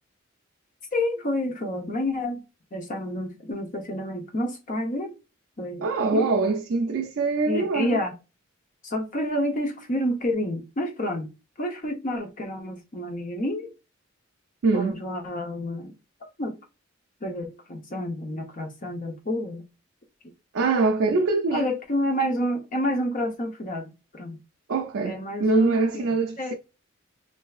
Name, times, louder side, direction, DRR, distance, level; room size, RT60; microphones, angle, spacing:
voice 1, 0.9-2.4 2.7-5.2 5.6-6.3 7.5-8.1 8.8-11.3 11.6-13.7 14.7-15.9 16.4-16.6 17.2-19.6 21.5-24.4 25.0-25.8 26.4-26.5, left 1 dB, 40° left, 0.7 m, -29 dB
voice 2, 5.8-8.0 14.6-14.9 20.5-21.7 24.7-26.5, right 3 dB, 65° right, 0.4 m, -23 dB
3.3 x 2.5 x 2.3 m
head